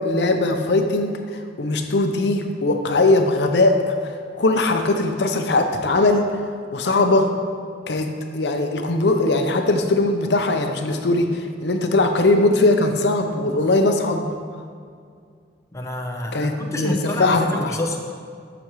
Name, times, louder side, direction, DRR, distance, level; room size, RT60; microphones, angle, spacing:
voice 1, 0.0-6.4 6.7-7.3 7.9-14.3 16.3-17.8, left 2 dB, 70° left, 5 dB, 0.7 m, -20 dB
voice 2, 15.7-18.0, left 1 dB, 20° left, 1 dB, 0.7 m, -28 dB
14.0 x 6.1 x 3.1 m, 2.2 s
head